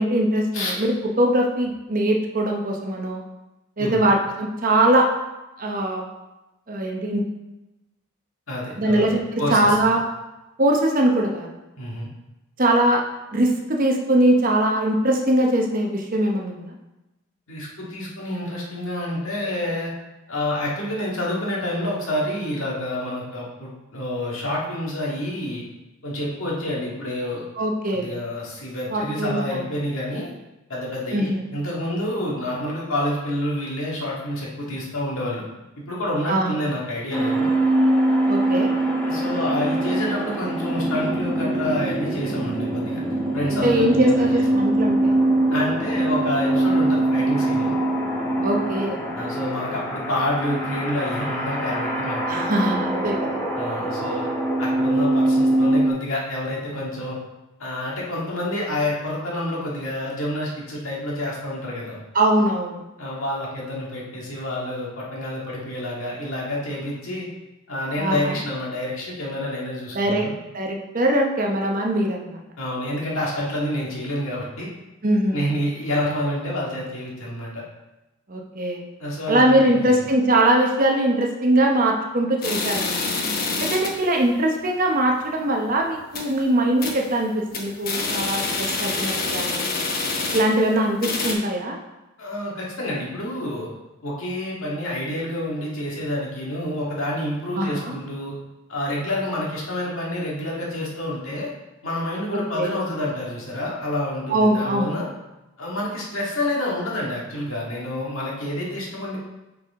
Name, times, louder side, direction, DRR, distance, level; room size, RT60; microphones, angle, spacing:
voice 1, 0.0-3.2 3.8-5.1 5.6-6.0 6.7-7.2 8.8-10.0 10.6-11.5 12.6-13.0 13.3-16.7 27.6-28.1 28.9-29.7 31.1-31.4 36.3-36.6 38.3-38.7 43.5-45.2 48.4-49.0 52.3-53.4 62.1-62.8 68.0-68.3 69.9-70.3 70.5-72.4 75.0-75.4 78.3-78.8 79.3-83.0 83.6-89.7 90.3-91.8 97.6-97.9 102.3-102.7 104.3-104.9, right 1 dB, 40° right, 1 dB, 0.8 m, -21 dB
voice 2, 8.5-9.9 11.8-12.1 17.5-19.9 20.3-25.6 26.0-27.5 27.9-30.3 30.7-35.4 35.8-37.5 39.0-43.0 43.3-44.5 45.5-47.7 49.1-52.4 53.6-54.3 54.6-57.2 57.6-62.0 63.0-67.3 67.7-70.3 72.6-74.7 75.3-77.6 79.0-79.9 92.2-93.7 94.0-98.3 98.7-101.5 101.8-105.1 105.6-109.3, left 1 dB, 70° left, -4 dB, 1.9 m, -28 dB
sound 1, 37.1-55.9, right 1 dB, 5° left, 1.0 m, -23 dB
sound 2, 82.4-84.1 84.4-84.5 84.9-85.0 85.4-85.6 85.9-86.4 86.8-87.1 87.4-90.7 91.0-91.3, left 3 dB, 40° left, 1.0 m, -27 dB
8.5 x 4.7 x 3.6 m, 1.0 s
head